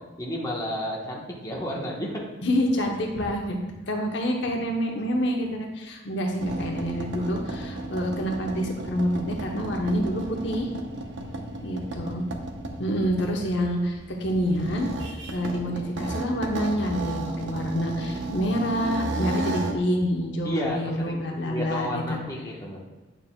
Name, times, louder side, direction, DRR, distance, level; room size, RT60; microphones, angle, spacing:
voice 1, 0.2-2.2 11.4-11.6 20.4-20.8 21.0-22.8, equal, 20° left, -3 dB, 1.0 m, -31 dB
voice 2, 2.4-3.6 3.9-10.7 11.6-12.3 12.8-22.2, equal, 60° left, 1 dB, 0.9 m, -27 dB
sound 1, 6.4-19.8, right 2 dB, 65° right, 0.8 m, -33 dB
9.2 x 6.5 x 2.2 m, 1.2 s
head